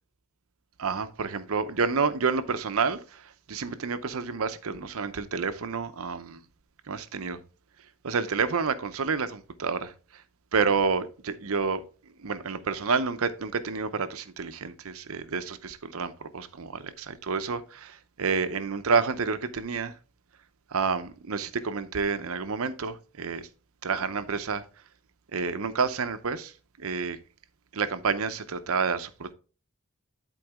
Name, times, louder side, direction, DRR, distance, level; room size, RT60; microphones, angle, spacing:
voice 1, 0.8-6.4 6.9-7.4 8.0-10.2 10.5-11.8 12.2-19.9 20.7-23.5 23.8-24.6 25.3-26.5 26.8-27.2 27.7-29.3, right 5 dB, 70° right, 0.7 m, -29 dB
11.0 x 4.6 x 3.5 m
head